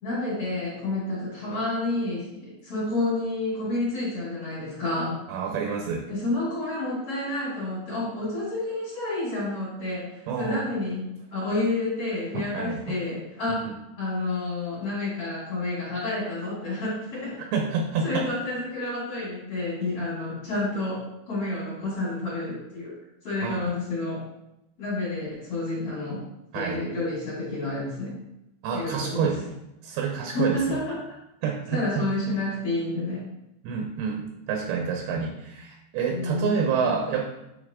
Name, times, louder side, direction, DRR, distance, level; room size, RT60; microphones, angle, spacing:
voice 1, 0.0-5.2 6.1-13.7 14.0-17.4 18.0-23.0 23.2-24.2 24.8-26.2 26.5-28.2 28.7-29.4 30.3-31.0 31.7-33.2 36.1-36.5, left 2 dB, 40° left, -8 dB, 2.7 m, -29 dB
voice 2, 5.3-6.1 10.3-10.7 12.3-12.8 13.5-13.7 17.5-18.3 23.4-23.7 26.5-26.8 28.6-29.4 29.8-30.8 31.4-32.0 33.6-37.3, right 6 dB, 75° right, 2 dB, 2.5 m, -28 dB
8.5 x 3.9 x 3.6 m, 0.89 s
omnidirectional pair, 4.8 m